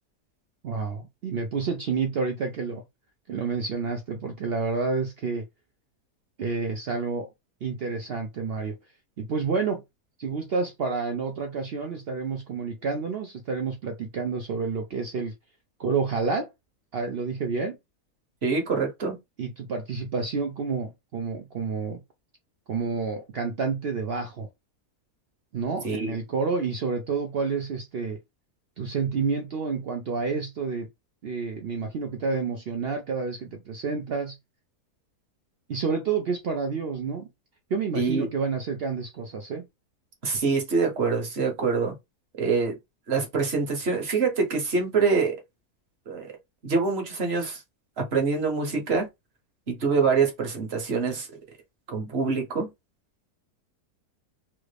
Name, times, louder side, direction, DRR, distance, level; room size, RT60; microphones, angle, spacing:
voice 1, 0.6-2.8 3.3-5.4 6.4-7.3 7.6-8.8 9.2-9.8 10.2-15.3 15.8-16.5 16.9-17.8 19.4-22.0 22.7-24.5 25.5-28.2 28.8-30.9 31.2-34.4 35.7-37.3 37.7-39.7, right 4 dB, 75° right, 0.5 m, -29 dB
voice 2, 18.4-19.2 25.8-26.1 37.9-38.3 40.2-41.9 42.4-42.8 43.1-45.4 46.1-46.3 46.6-47.6 48.0-49.1 49.7-51.3 51.9-52.7, right 4 dB, 45° right, 1.1 m, -25 dB
3.1 x 2.4 x 3.2 m
omnidirectional pair, 1.7 m